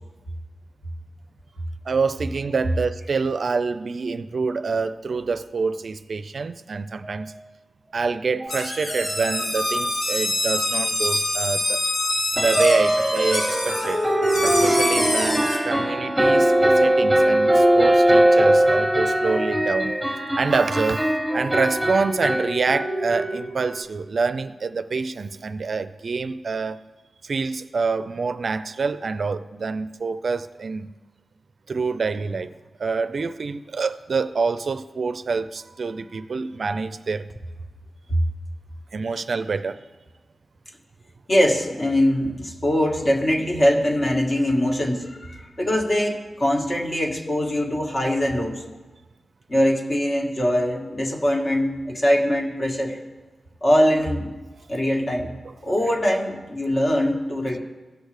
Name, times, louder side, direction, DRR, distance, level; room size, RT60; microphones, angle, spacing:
voice 1, 1.9-7.3 7.9-11.8 12.4-14.0 14.4-19.9 20.3-21.1 21.3-26.8 27.2-30.9 31.7-32.5 32.8-37.3 38.9-39.8 55.4-55.5, right 4 dB, 60° right, 0.4 m, -26 dB
sound 1, 8.4-8.5 8.9-9.0 9.3-9.4 12.4-23.8, right 1 dB, 10° right, 1.3 m, -20 dB
sound 2, 8.5-15.6, left 1 dB, 90° left, 1.9 m, -25 dB
voice 2, 41.3-48.6 49.5-53.0 53.6-54.3 54.7-57.6, equal, 40° left, 1.5 m, -22 dB
17.0 x 6.4 x 3.3 m
cardioid pair, 75°, 0 cm